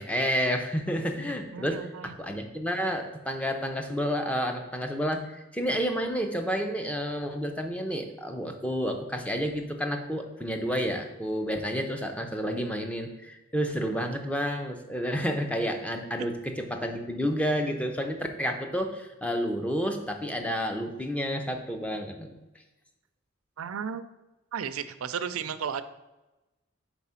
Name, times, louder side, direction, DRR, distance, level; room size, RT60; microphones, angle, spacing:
voice 1, 0.0-22.3, equal, 5° left, 4 dB, 0.5 m, -30 dB
voice 2, 1.5-2.2 23.6-24.0 24.5-25.8, right 7 dB, 90° right, 12 dB, 0.4 m, -34 dB
4.8 x 4.3 x 5.6 m, 1.0 s
head